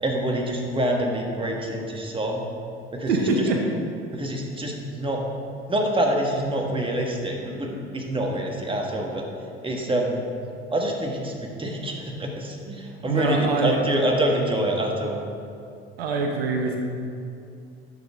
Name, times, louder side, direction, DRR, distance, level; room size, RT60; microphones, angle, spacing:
voice 1, 0.0-2.4 2.9-3.1 3.4-3.5 4.1-5.2 5.7-9.3 9.6-10.2 10.7-15.2, right 1 dB, 15° right, 0 dB, 1.6 m, -26 dB
voice 2, 3.1-3.6 13.0-13.8 16.0-16.8, right 3 dB, 80° right, 2 dB, 0.9 m, -23 dB
11.0 x 6.6 x 3.6 m, 2.5 s
hypercardioid pair, 60°, 30 cm